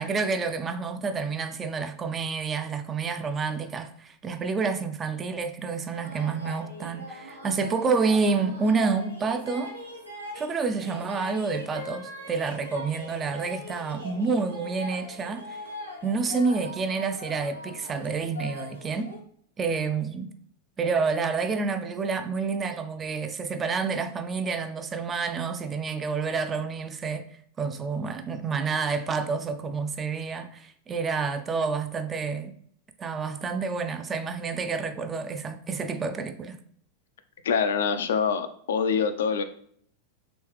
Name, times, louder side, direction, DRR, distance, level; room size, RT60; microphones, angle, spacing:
voice 1, 0.0-9.8 10.3-15.6 16.0-19.1 19.6-20.3 20.8-27.2 27.6-32.5 33.0-36.6, right 4 dB, 20° right, 0.3 m, -29 dB
sound 1, 5.9-19.2, left 1 dB, 85° right, 0.8 m, -41 dB
voice 2, 37.4-39.4, left 6 dB, 60° left, 0.3 m, -25 dB
3.1 x 3.0 x 3.1 m
figure-of-eight pair, 90°, 0 cm